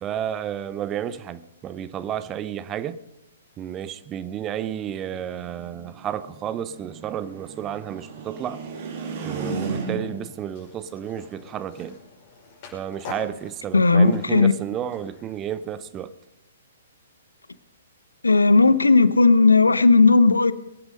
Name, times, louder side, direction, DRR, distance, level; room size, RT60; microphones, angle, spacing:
voice 1, 0.0-3.0 3.6-8.6 9.2-12.0 12.7-16.1, right 10 dB, 20° right, 0.7 m, -31 dB
sound 1, 5.3-10.4, right 4 dB, 45° right, 2.8 m, -34 dB
Skateboard, 10.5-15.8, left 3 dB, 40° left, 5.8 m, -44 dB
voice 2, 13.7-14.5 18.2-20.5, left 3 dB, 80° left, 0.8 m, -15 dB
23.0 x 9.6 x 5.3 m
figure-of-eight pair, 120°, 0 cm